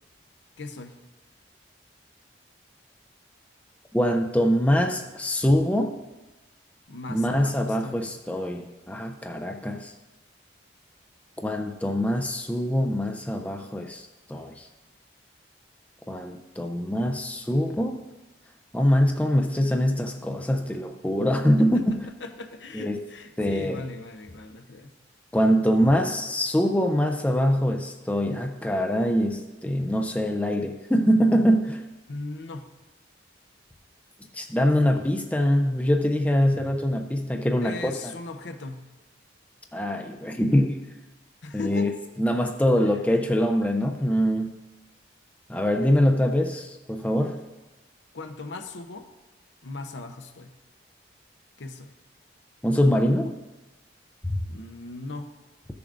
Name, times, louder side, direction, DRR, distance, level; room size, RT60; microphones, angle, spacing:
voice 1, 0.6-1.0 6.9-8.0 21.6-21.7 22.2-24.9 32.1-32.7 37.6-38.9 41.4-41.9 42.9-43.0 48.1-49.1 49.6-50.5 51.6-51.9 54.5-55.3, left 3 dB, 80° left, 8 dB, 0.7 m, -38 dB
voice 2, 3.9-5.9 7.1-9.9 11.4-14.7 16.1-18.0 18.7-21.8 22.7-23.0 23.4-23.8 25.3-31.8 34.3-38.1 39.7-40.8 41.5-41.9 42.2-44.5 45.5-47.4 52.6-53.3 54.2-54.4, equal, 10° left, 5 dB, 0.4 m, -24 dB
14.5 x 6.9 x 2.5 m, 1.1 s
head